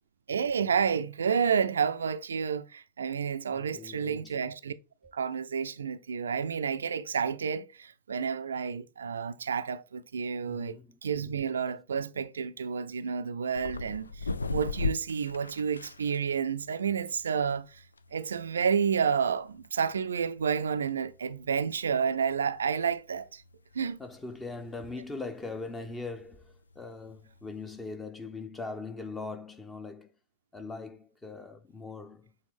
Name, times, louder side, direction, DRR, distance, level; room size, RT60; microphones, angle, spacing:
voice 1, 0.3-4.7 5.1-17.8 18.1-23.4 23.7-24.0, right 6 dB, 70° right, 0.4 m, -30 dB
voice 2, 3.5-4.4 10.5-11.0 24.0-30.1 30.5-32.3, left 3 dB, 15° left, 0.9 m, -41 dB
sound 1, 13.5-27.9, left 4 dB, 75° left, 0.4 m, -41 dB
7.5 x 3.8 x 3.6 m
figure-of-eight pair, 90°, 0 cm